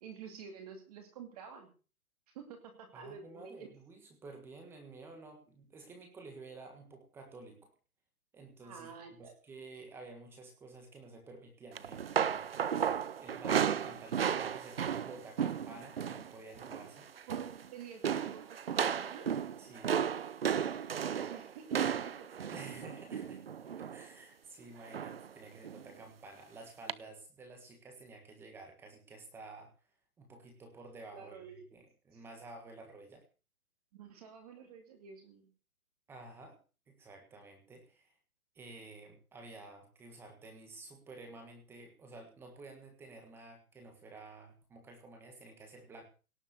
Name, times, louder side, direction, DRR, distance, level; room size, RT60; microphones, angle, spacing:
voice 1, 0.0-1.7 2.3-3.7 8.6-9.4 17.3-19.4 21.1-22.3 31.1-31.6 32.1-32.2 33.9-35.5, right 7 dB, 25° right, 5 dB, 2.5 m, -49 dB
voice 2, 2.9-7.7 8.3-12.5 13.2-17.1 19.6-20.0 22.5-23.4 23.9-29.7 30.2-33.2 36.1-36.6 36.9-38.1 38.5-46.0, right 3 dB, 5° right, 4 dB, 1.5 m, -52 dB
sound 1, 11.7-16.3 16.5-16.9 17.2-17.7 18.0-24.1 24.9-25.3 25.6-25.8 26.9-27.0, right 8 dB, 40° right, 0.6 m, -34 dB
17.5 x 7.4 x 6.6 m, 0.36 s
hypercardioid pair, 165°, 44 cm